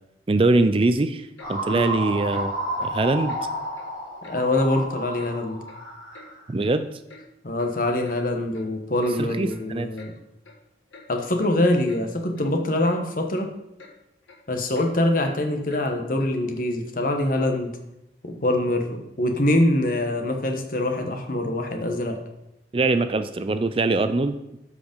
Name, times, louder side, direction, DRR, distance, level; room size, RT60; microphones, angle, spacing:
voice 1, 0.3-2.5 2.8-3.4 6.5-6.9 9.2-9.9 22.7-24.3, right 2 dB, 30° right, 10 dB, 0.4 m, -22 dB
Clock, 1.4-1.5 1.8-2.0 2.3-2.5 2.8-2.9 3.3-3.4 3.7-3.9 4.2-4.4 4.7-4.9 5.2-5.3 5.7-6.3 6.6-6.7 7.1-7.2 7.6-7.7 8.0-8.2 8.5-8.7 9.0-9.2 9.5-9.6 9.9-10.1 10.4-10.6 10.9-11.1 11.4-11.5 11.9-12.0 12.3-12.5 12.8-13.0 13.3-13.5 13.8-13.9 14.2-14.4 14.7-14.9 15.2-15.3 15.7-15.8 16.2-16.3, left 3 dB, 90° left, 1.7 m, -47 dB
sound 1, 1.4-6.5, right 1 dB, 5° right, 4.1 m, -31 dB
voice 2, 4.3-5.6 7.4-10.1 11.1-13.5 14.5-17.7 18.2-22.2, left 1 dB, 45° left, 5 dB, 1.2 m, -24 dB
13.0 x 5.0 x 5.2 m, 0.88 s
head